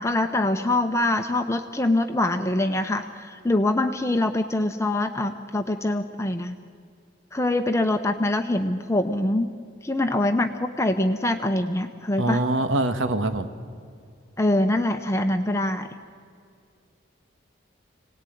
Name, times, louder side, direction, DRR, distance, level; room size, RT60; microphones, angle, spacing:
voice 1, 0.0-6.6 7.3-9.5 9.8-12.4 14.4-15.9, left 1 dB, 15° left, 6 dB, 0.8 m, -24 dB
voice 2, 12.2-13.5, right 2 dB, 85° right, 9 dB, 1.5 m, -24 dB
26.0 x 18.5 x 9.3 m, 2.3 s
head